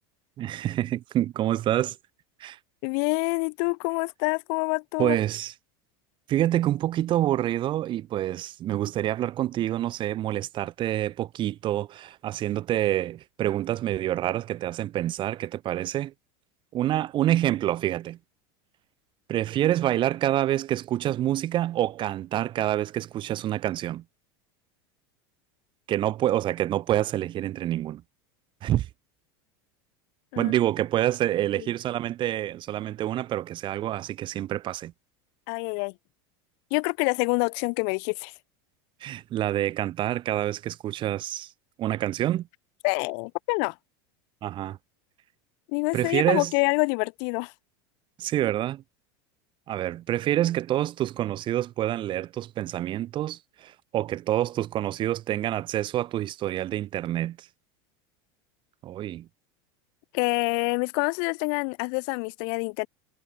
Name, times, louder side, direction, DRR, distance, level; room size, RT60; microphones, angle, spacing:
voice 1, 0.4-2.0 2.4-2.6 5.0-5.5 6.3-16.1 16.7-18.2 19.3-24.0 25.9-28.0 28.6-28.9 30.4-34.9 39.0-41.5 41.8-42.5 44.4-44.8 45.9-46.5 48.2-48.8 49.7-57.5 58.8-59.3, right 13 dB, 40° right, 2.9 m, -27 dB
voice 2, 2.8-5.2 30.3-30.5 35.5-35.9 36.7-38.3 42.8-43.7 45.7-47.5 60.1-62.9, left 40 dB or more, 60° left, 2.3 m, -26 dB
supercardioid pair, 135°, 13 cm